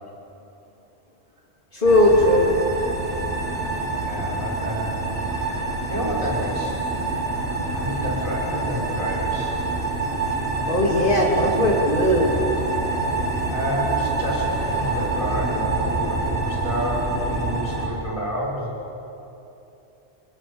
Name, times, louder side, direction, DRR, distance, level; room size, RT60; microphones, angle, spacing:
voice 1, 1.7-2.8 10.7-12.4, left 1 dB, 50° left, -1 dB, 3.5 m, -18 dB
sound 1, 1.8-17.9, right 3 dB, 80° right, 6.3 m, -26 dB
voice 2, 4.0-5.0 5.9-6.8 7.7-9.6 13.5-18.8, equal, 30° right, -4 dB, 6.3 m, -29 dB
29.5 x 24.0 x 7.3 m, 2.9 s
omnidirectional pair, 1.1 m